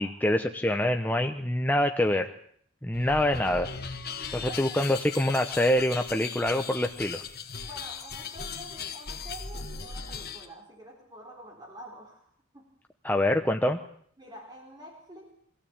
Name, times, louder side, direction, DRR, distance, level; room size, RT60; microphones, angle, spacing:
voice 1, 0.0-2.3 2.8-3.7 4.3-7.2 13.0-13.8, left 1 dB, 10° left, 4 dB, 0.9 m, -25 dB
sound 1, 2.9-10.5, left 6 dB, 50° left, 2.0 m, -38 dB
voice 2, 4.1-5.0 7.6-12.2 12.5-12.7 14.2-15.3, equal, 20° right, 0 dB, 3.9 m, -47 dB
24.0 x 16.0 x 8.8 m, 0.62 s
head